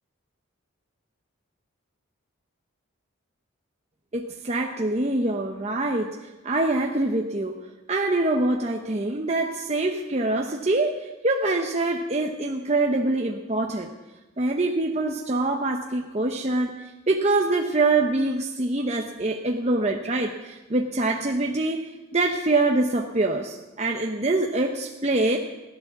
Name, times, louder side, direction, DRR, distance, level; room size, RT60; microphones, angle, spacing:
voice 1, 4.1-7.6 7.9-13.9 14.4-25.4, right 2 dB, 30° right, 2 dB, 0.8 m, -25 dB
16.0 x 11.5 x 7.1 m, 1.1 s
head